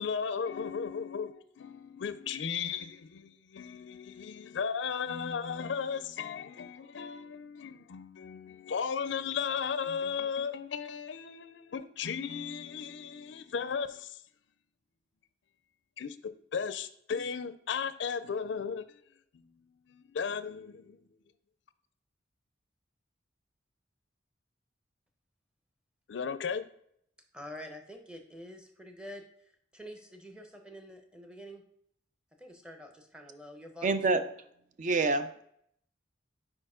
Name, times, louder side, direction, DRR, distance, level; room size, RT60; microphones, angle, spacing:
voice 1, 0.0-14.2 16.0-18.8 19.3-19.4 19.9-21.0 26.1-26.7, left 6 dB, 65° left, 0.4 m, -35 dB
voice 2, 27.3-29.2 29.7-31.6 32.4-34.2, equal, 5° right, 0.7 m, -47 dB
voice 3, 33.8-34.2 34.8-35.4, right 3 dB, 40° right, 0.3 m, -27 dB
4.8 x 4.4 x 4.9 m
head